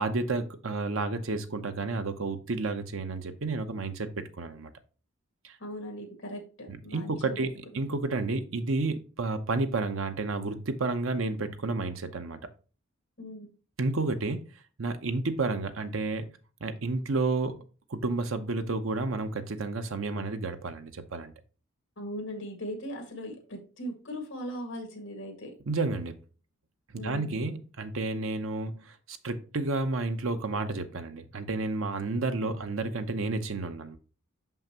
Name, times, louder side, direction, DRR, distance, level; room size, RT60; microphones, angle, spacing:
voice 1, 0.0-4.7 5.4-5.6 6.7-7.5 7.7-12.4 13.8-14.4 14.8-16.3 16.6-17.6 17.9-21.3 25.7-26.2 26.9-34.0, right 3 dB, 75° right, 0.8 m, -31 dB
voice 2, 5.6-7.4 13.2-13.5 22.0-25.5 26.9-27.4 32.4-32.7, equal, 65° left, 1.9 m, -39 dB
5.8 x 5.6 x 2.9 m
head